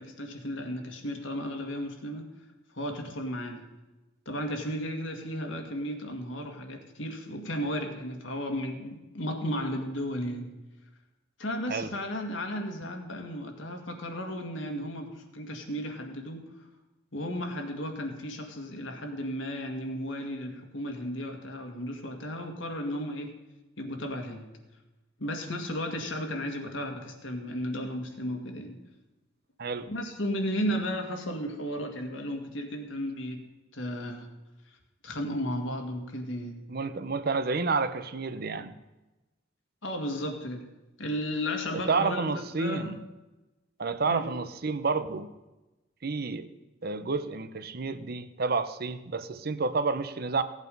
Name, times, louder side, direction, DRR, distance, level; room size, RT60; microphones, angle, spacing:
voice 1, 0.0-2.3 2.7-3.7 4.3-10.6 11.4-16.5 17.1-23.4 23.8-24.5 25.2-28.8 29.9-33.4 33.7-34.3 35.0-36.7 39.8-40.7 41.0-43.0 44.0-44.3, equal, 75° left, 2.0 m, -34 dB
voice 2, 29.6-29.9 36.7-38.7 41.9-43.0 43.8-45.3 46.0-46.5 46.8-50.4, right 4 dB, 50° right, 0.7 m, -30 dB
16.0 x 8.2 x 5.4 m
head